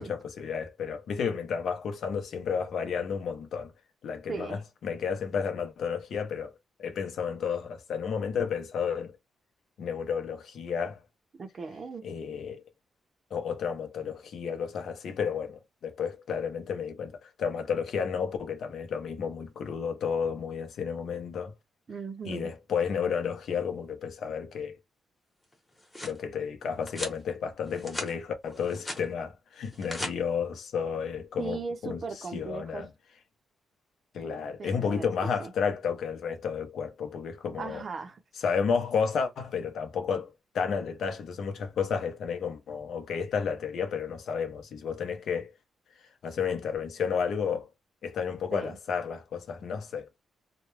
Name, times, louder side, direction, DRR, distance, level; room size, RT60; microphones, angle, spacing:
voice 1, 0.0-3.7 4.0-6.5 6.8-9.2 9.8-11.0 12.0-12.6 13.3-21.5 22.3-24.8 26.0-32.0 32.3-32.9 34.1-37.8 38.4-45.5 46.2-47.7 48.0-50.1, left 6 dB, 65° left, 0.7 m, -32 dB
voice 2, 4.3-4.6 11.4-12.0 21.9-22.5 31.4-32.9 34.6-35.1 35.4-35.5 37.6-38.2 48.5-48.8, right 4 dB, 40° right, 0.5 m, -37 dB
sound 1, 25.5-26.2 26.9-27.2 27.7-28.1 28.5-29.0 29.6-30.1, left 1 dB, 10° left, 0.9 m, -37 dB
2.3 x 2.1 x 3.1 m
cardioid pair, 140°, 0 cm